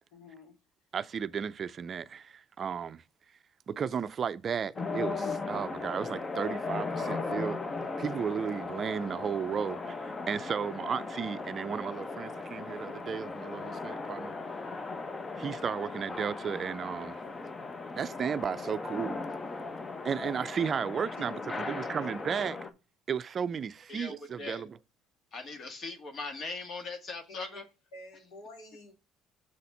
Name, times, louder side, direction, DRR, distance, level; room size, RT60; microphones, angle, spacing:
voice 1, 0.1-0.6 21.2-22.2 27.3-27.7 27.9-28.9, left 2 dB, 80° left, 2.4 m, -50 dB
voice 2, 0.9-3.0 3.7-7.6 8.0-14.3 15.4-17.2 17.9-19.2 20.0-21.4 21.7-22.6 23.1-24.8, right 7 dB, 45° right, 0.4 m, -34 dB
sound 1, 4.8-22.7, left 3 dB, 30° left, 1.0 m, -37 dB
voice 3, 23.9-24.6 25.3-27.6, left 3 dB, 50° left, 1.6 m, -40 dB
6.4 x 4.1 x 5.4 m
supercardioid pair, 75°, 0 cm